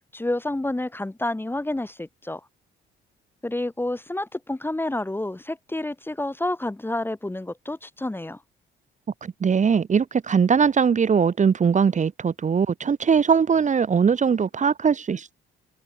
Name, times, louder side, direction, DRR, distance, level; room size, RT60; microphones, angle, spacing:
voice 1, 0.1-2.4 3.4-8.4, left 1 dB, 10° left, 1.5 m, -29 dB
voice 2, 9.2-15.3, right 6 dB, 40° right, 1.2 m, -21 dB
cardioid pair, 90°, 20 cm